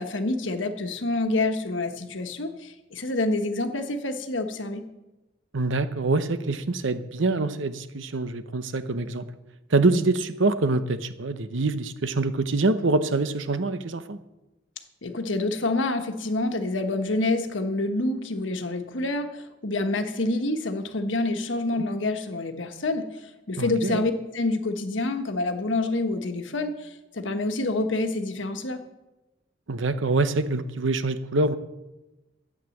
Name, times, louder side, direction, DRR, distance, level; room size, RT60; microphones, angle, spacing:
voice 1, 0.0-4.8 15.0-23.0 23.5-28.8, left 2 dB, 75° left, 7 dB, 1.3 m, -27 dB
voice 2, 5.5-9.2 9.7-14.2 21.8-21.9 23.6-24.0 29.7-31.6, right 3 dB, 80° right, 11 dB, 0.9 m, -25 dB
12.5 x 8.3 x 7.2 m, 1.0 s
head